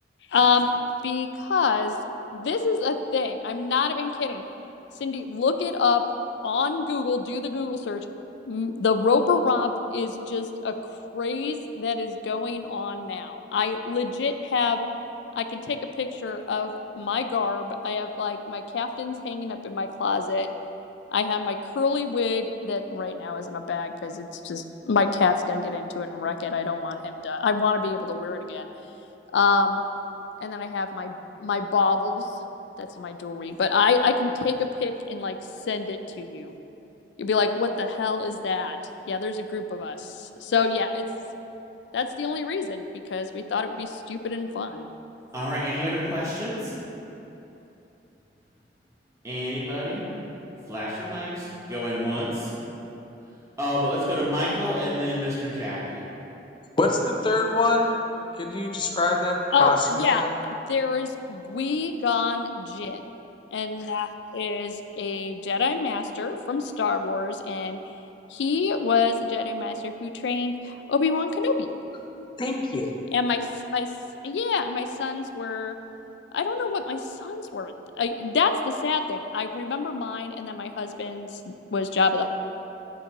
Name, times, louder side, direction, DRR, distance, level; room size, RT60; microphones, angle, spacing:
voice 1, 0.3-0.7 1.0-2.0 2.3-4.4 5.0-6.0 6.4-8.0 8.5-10.7 11.1-14.9 15.4-20.5 21.1-28.7 29.3-29.8 30.4-32.3 32.8-35.4 35.7-36.6 37.2-38.8 39.1-41.0 41.9-42.8 43.1-44.9 59.5-63.0 63.5-67.8 68.3-71.7 73.1-73.4 73.7-73.9 74.2-75.8 76.3-82.3, left 4 dB, 90° left, 8 dB, 0.4 m, -26 dB
voice 2, 45.3-46.8 49.2-50.0 50.7-52.5 53.6-56.0, equal, 20° right, -8 dB, 1.0 m, -28 dB
voice 3, 56.8-58.0 58.4-60.4 72.4-73.0, left 2 dB, 25° left, 2 dB, 0.5 m, -24 dB
9.0 x 4.5 x 2.9 m, 3.0 s
head